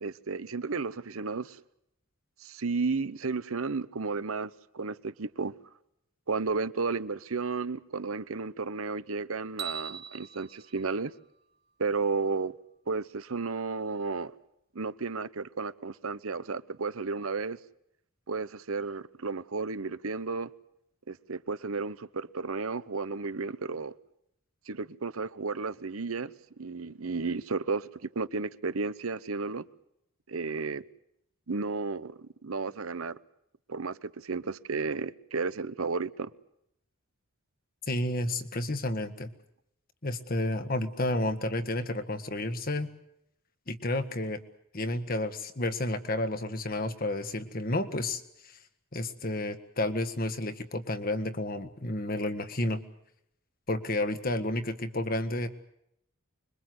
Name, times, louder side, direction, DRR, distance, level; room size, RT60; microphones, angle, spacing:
voice 1, 0.0-1.6 2.4-5.6 6.3-11.1 11.8-12.5 12.9-14.3 14.7-17.6 18.3-20.5 21.1-23.9 24.7-29.6 30.3-30.8 31.5-33.2 33.7-36.3, right 4 dB, 80° right, 0.9 m, -33 dB
sound 1, 9.6-11.8, right 8 dB, 25° right, 2.0 m, -42 dB
voice 2, 37.9-39.3 40.0-42.9 43.7-44.4 44.7-48.6 48.9-52.8 53.7-55.5, left 1 dB, 45° left, 1.7 m, -31 dB
25.5 x 22.5 x 7.9 m
head